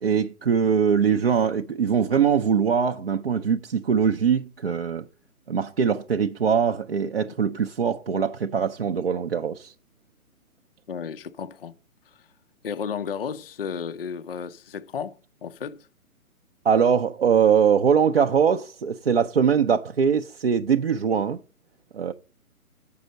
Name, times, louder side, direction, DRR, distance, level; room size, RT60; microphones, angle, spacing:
voice 1, 0.0-5.0 5.5-9.7 16.6-21.4 21.9-22.1, right 7 dB, 45° right, 0.4 m, -22 dB
voice 2, 10.9-11.8 12.1-12.2 12.6-15.9, left 6 dB, 40° left, 0.4 m, -33 dB
8.1 x 5.5 x 6.2 m
hypercardioid pair, 155°, 44 cm